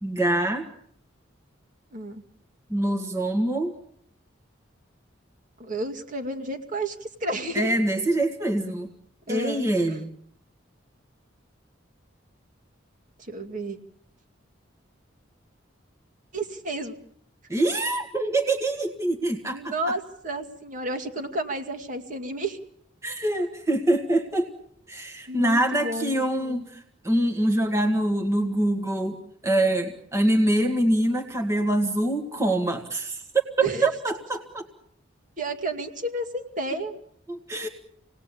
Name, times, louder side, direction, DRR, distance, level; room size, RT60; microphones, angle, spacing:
voice 1, 0.0-0.7 2.7-3.7 7.5-8.9 9.3-10.1 17.5-19.6 23.0-24.5 24.9-33.2 33.6-34.7 37.3-37.7, right 1 dB, 15° right, 4 dB, 1.7 m, -25 dB
voice 2, 1.9-2.2 5.6-7.7 9.3-10.0 13.2-13.8 16.3-16.9 19.5-22.6 25.3-26.7 33.6-33.9 35.4-36.9, right 1 dB, 40° right, 5 dB, 2.3 m, -31 dB
28.0 x 19.0 x 8.5 m, 0.68 s
head